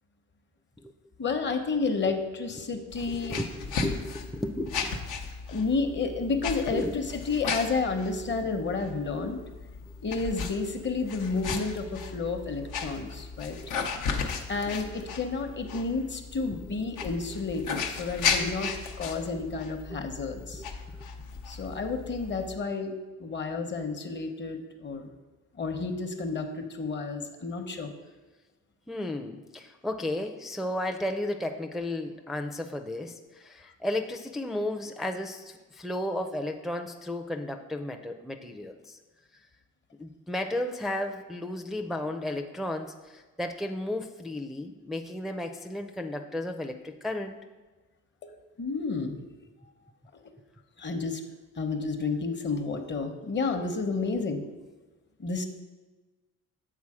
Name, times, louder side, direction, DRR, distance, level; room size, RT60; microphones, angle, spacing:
voice 1, 1.2-3.4 5.5-9.4 10.0-13.6 14.5-20.6 21.5-25.1 25.6-27.9 48.2-48.3 48.6-49.2 50.8-51.2 51.6-54.5 55.2-55.5, left 4 dB, 40° left, 6 dB, 0.8 m, -31 dB
voice 2, 2.6-5.0 6.7-6.9 8.8-8.9 9.8-9.9 13.0-13.1 13.6-13.7 14.8-14.9 16.5-16.6 19.9-20.0 20.6-20.7 20.9-21.1 28.9-39.0 40.0-47.4, left 1 dB, ahead, 4 dB, 0.4 m, -34 dB
sound 1, 2.9-22.6, left 5 dB, 85° left, 0.8 m, -36 dB
7.4 x 4.0 x 4.9 m, 1.2 s
cardioid pair, 90°, 30 cm